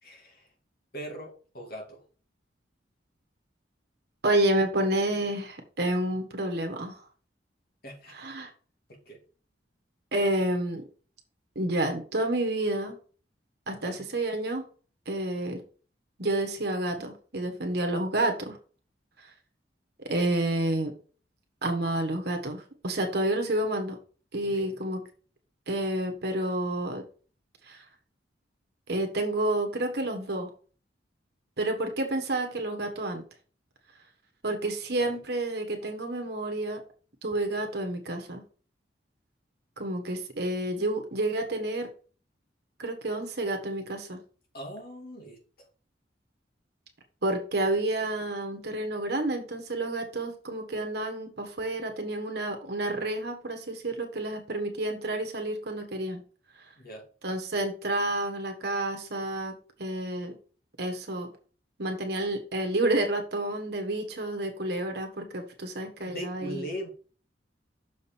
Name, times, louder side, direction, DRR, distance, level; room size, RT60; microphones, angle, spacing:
voice 1, 0.0-0.5 0.9-2.0 7.8-8.1 8.9-9.2 13.8-14.0 24.4-24.8 35.0-35.2 44.5-45.4 56.8-57.0 66.0-66.9, right 1 dB, 55° left, 1 dB, 2.4 m, -40 dB
voice 2, 4.2-7.0 8.2-8.5 10.1-10.8 11.5-13.0 13.7-14.7 15.1-15.6 16.2-18.6 19.2-19.3 20.0-20.9 21.6-24.0 24.3-25.0 25.7-27.0 27.6-27.8 28.9-30.5 31.6-33.2 34.4-36.8 37.2-38.4 39.8-41.9 42.8-44.2 47.2-56.2 57.2-60.4 60.8-61.3 61.8-66.6, right 1 dB, 60° right, 4 dB, 1.4 m, -29 dB
6.6 x 5.2 x 4.4 m, 0.39 s
head